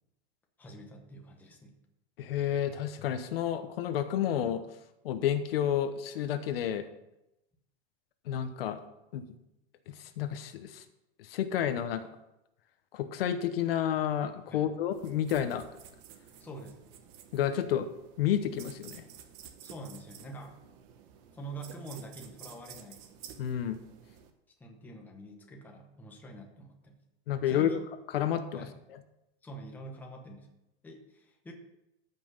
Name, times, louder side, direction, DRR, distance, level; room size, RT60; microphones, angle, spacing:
voice 1, 0.6-1.8 14.5-14.7 16.4-16.8 19.6-20.6 21.3-23.1 24.6-27.0 27.5-27.8 28.5-28.7 29.4-30.5 30.8-31.5, right 1 dB, 5° left, 1 dB, 1.0 m, -46 dB
voice 2, 2.2-4.6 5.0-6.8 8.3-8.8 9.1-9.3 9.9-10.8 11.2-12.0 12.9-15.6 17.3-17.9 18.2-19.0 23.4-23.8 27.3-27.8 28.1-28.7, left 10 dB, 65° left, 10 dB, 1.1 m, -30 dB
sound 1, 14.9-24.3, right 9 dB, 35° right, 1.0 m, -52 dB
14.0 x 5.9 x 5.7 m, 0.89 s
supercardioid pair, 175°, 32 cm